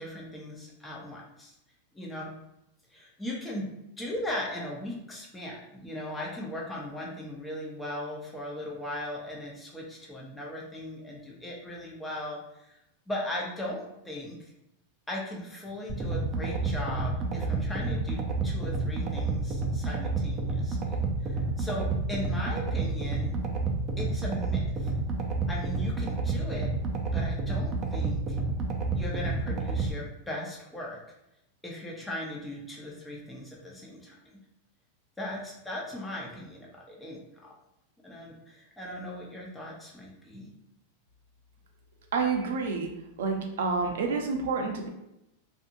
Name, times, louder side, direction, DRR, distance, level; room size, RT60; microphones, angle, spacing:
voice 1, 0.0-1.5 1.9-2.3 2.9-12.8 13.1-14.5 15.1-23.4 24.0-24.9 25.5-26.7 27.1-28.4 28.9-31.0 31.6-34.1 35.2-37.5 38.0-40.5, left 1 dB, 10° left, -3 dB, 0.7 m, -38 dB
sound 1, 15.9-29.9, right 3 dB, 30° right, 0.5 m, -30 dB
voice 2, 42.1-42.9 43.2-44.9, right 4 dB, 80° right, 3 dB, 0.6 m, -28 dB
2.6 x 2.6 x 2.5 m, 0.85 s
supercardioid pair, 135°, 0 cm